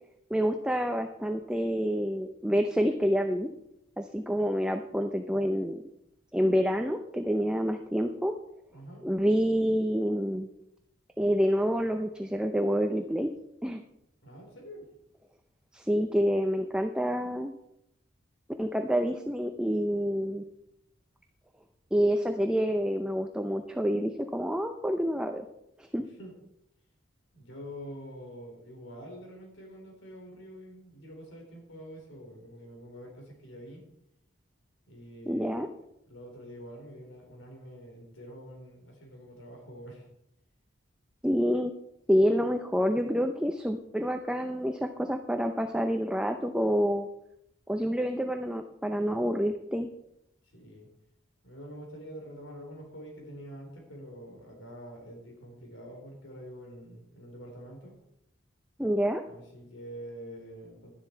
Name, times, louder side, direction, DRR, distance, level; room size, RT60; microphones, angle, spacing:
voice 1, 0.3-3.5 4.0-5.8 6.3-8.3 9.0-10.5 11.2-13.3 13.6-13.8 15.7-17.5 18.6-20.4 21.9-25.5 25.8-26.1 35.3-35.7 41.2-41.7 42.1-47.1 47.7-49.9 58.8-59.2, equal, 5° right, 5 dB, 0.6 m, -28 dB
voice 2, 8.7-9.0 14.2-14.9 26.2-26.3 27.3-33.8 34.9-40.1 50.5-50.9 51.4-58.0 59.3-60.9, equal, 85° left, 1 dB, 4.0 m, -46 dB
12.0 x 10.5 x 4.5 m, 0.80 s
head